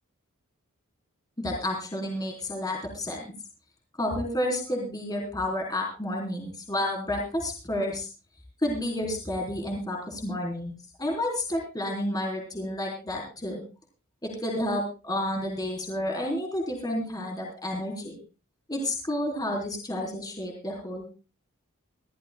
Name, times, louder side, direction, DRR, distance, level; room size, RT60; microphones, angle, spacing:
voice 1, 1.4-3.2 4.0-8.1 8.6-10.7 11.0-13.6 14.2-18.1 18.7-21.1, left 1 dB, 20° left, 1 dB, 4.0 m, -30 dB
24.5 x 14.0 x 2.3 m, 0.32 s
head